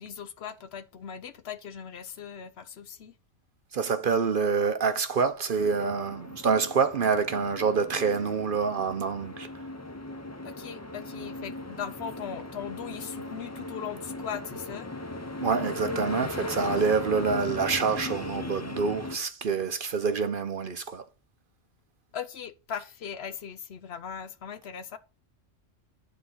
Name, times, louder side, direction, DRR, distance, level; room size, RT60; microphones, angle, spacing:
voice 1, 0.0-3.1 10.4-14.9 22.1-25.0, left 8 dB, 60° left, 0.9 m, -39 dB
voice 2, 3.7-9.5 15.4-21.0, right 5 dB, 50° right, 0.8 m, -27 dB
sound 1, 5.6-19.2, left 1 dB, 15° left, 0.7 m, -38 dB
9.8 x 3.8 x 5.6 m
omnidirectional pair, 1.3 m